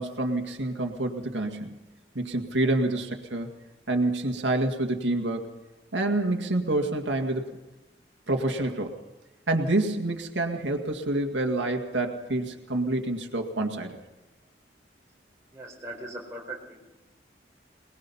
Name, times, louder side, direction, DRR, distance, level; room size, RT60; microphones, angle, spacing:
voice 1, 0.0-1.8 2.2-3.5 3.9-5.5 5.9-7.5 8.3-9.0 9.5-14.0, right 2 dB, 90° right, 3 dB, 2.1 m, -27 dB
voice 2, 15.5-16.9, right 2 dB, 15° right, -1 dB, 4.5 m, -40 dB
23.0 x 20.0 x 5.6 m, 1.0 s
head